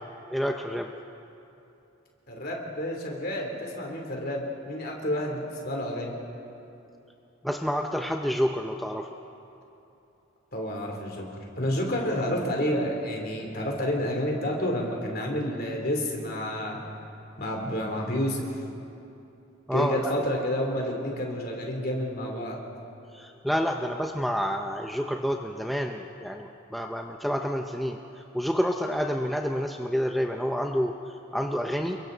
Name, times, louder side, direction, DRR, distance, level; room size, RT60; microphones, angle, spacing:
voice 1, 0.3-0.9 7.4-9.1 19.7-20.1 23.1-28.0 28.3-32.0, equal, ahead, 2 dB, 0.6 m, -28 dB
voice 2, 2.3-6.1 10.5-16.8 17.4-18.4 19.7-22.6, equal, 45° left, 0 dB, 3.2 m, -29 dB
29.0 x 22.5 x 4.0 m, 2.8 s
head